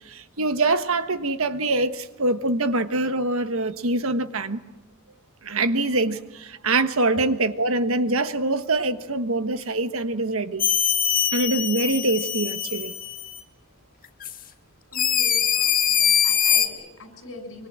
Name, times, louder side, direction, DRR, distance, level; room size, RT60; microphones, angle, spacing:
voice 1, 0.1-4.6 5.4-10.6 11.3-12.9, right 2 dB, 70° right, 1.4 m, -24 dB
sound 1, 10.6-13.4 14.2-14.3 14.9-16.7, left 9 dB, 40° left, 1.9 m, -22 dB
voice 2, 14.9-17.7, left 2 dB, 65° left, 6.4 m, -42 dB
24.5 x 24.5 x 8.9 m
head